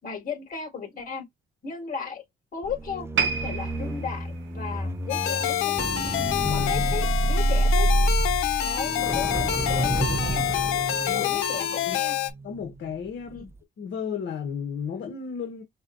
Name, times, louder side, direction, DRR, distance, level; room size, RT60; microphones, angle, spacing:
voice 1, 0.0-1.3 1.6-2.2 2.5-5.8 6.5-7.9 8.6-10.4 11.1-12.1 13.3-13.5, left 6 dB, 45° left, 3.9 m, -35 dB
sound 1, 2.6-12.9 13.3-13.6, right 2 dB, 10° right, 0.6 m, -28 dB
sound 2, 3.1-6.4 6.7-7.0 7.7-7.8, right 6 dB, 65° right, 0.8 m, -32 dB
sound 3, 5.1-12.3, left 11 dB, 90° left, 0.7 m, -27 dB
voice 2, 6.4-7.0 11.1-11.4 11.9-12.0 12.4-13.4 13.8-15.6, left 6 dB, 65° left, 1.1 m, -33 dB
5.4 x 2.3 x 3.8 m
cardioid pair, 90°, 20 cm